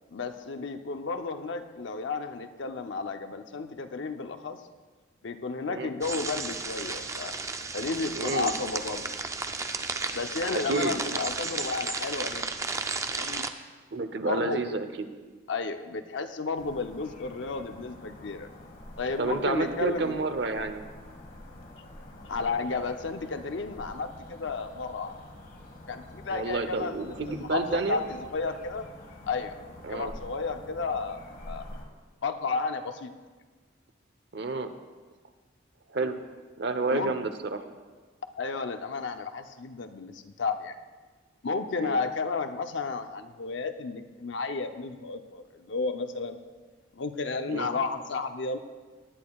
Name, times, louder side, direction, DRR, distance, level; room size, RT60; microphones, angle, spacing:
voice 1, 0.1-4.6 5.2-7.4 7.7-9.0 10.1-12.5 13.1-13.5 14.1-14.6 15.5-18.5 19.0-20.1 22.2-25.2 25.9-28.9 29.3-29.5 29.9-31.6 32.2-33.1 36.9-37.1 38.4-40.7 41.4-46.4 46.9-48.6, left 4 dB, 75° left, 7 dB, 0.6 m, -32 dB
sound 1, 6.0-13.5, right 4 dB, 15° right, 0.4 m, -33 dB
voice 2, 8.1-8.5 10.5-11.0 13.9-14.9 19.2-20.8 26.3-28.0 29.8-30.1 34.3-34.7 35.9-36.2 36.6-37.6 41.8-42.0 47.5-47.7, right 3 dB, 65° right, 9 dB, 0.7 m, -30 dB
sound 2, 16.5-31.8, left 1 dB, 50° left, 1.3 m, -47 dB
18.5 x 10.5 x 2.3 m, 1.4 s
head